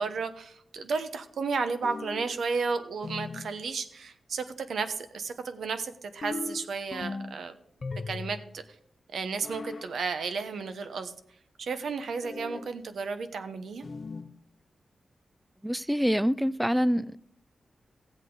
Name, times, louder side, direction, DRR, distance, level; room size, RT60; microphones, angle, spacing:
voice 1, 0.0-7.5 8.1-8.6 9.1-11.1 11.6-13.8, right 4 dB, 85° right, 1.0 m, -33 dB
sound 1, 1.8-2.4 3.0-3.5 6.2-7.4 7.8-8.5 9.4-9.9 12.2-12.7 13.8-14.3, left 3 dB, 40° left, 0.6 m, -38 dB
voice 2, 15.6-17.2, equal, 5° right, 0.3 m, -26 dB
15.0 x 8.2 x 3.9 m
wide cardioid pair, 135°, 0 cm